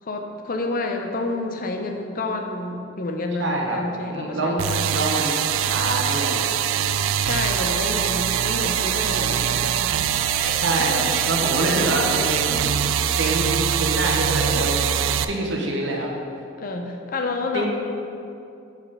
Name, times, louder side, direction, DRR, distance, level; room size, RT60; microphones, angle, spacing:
voice 1, 0.0-5.1 7.1-9.9 10.3-10.9 16.6-17.7, left 2 dB, 45° left, 4 dB, 0.5 m, -29 dB
voice 2, 3.4-3.8 4.1-4.6 4.9-5.3 5.6-6.4 9.2-9.4 10.6-12.8 13.1-16.1 17.5-17.7, right 1 dB, 70° right, 0 dB, 1.0 m, -25 dB
sound 1, 4.6-15.2, right 9 dB, 85° right, 0.3 m, -23 dB
5.3 x 5.1 x 5.4 m, 2.6 s
head